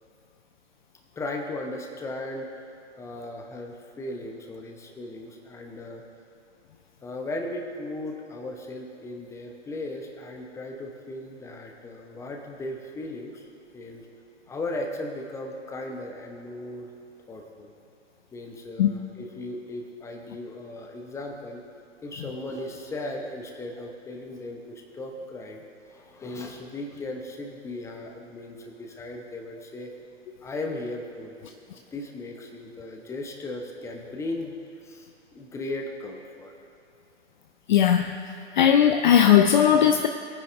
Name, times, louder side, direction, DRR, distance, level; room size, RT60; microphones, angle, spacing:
voice 1, 1.2-2.5 3.0-6.0 7.0-13.4 13.7-14.1 14.5-16.9 17.3-17.7 18.3-21.6 22.0-25.6 25.9-29.9 30.4-31.5 31.9-34.6 34.8-35.1 35.3-36.5, left 2 dB, 10° left, 2 dB, 0.9 m, -36 dB
voice 2, 37.7-38.1 38.6-40.1, left 9 dB, 40° left, 7 dB, 0.5 m, -18 dB
21.0 x 9.8 x 2.6 m, 2.6 s
figure-of-eight pair, 120°, 37 cm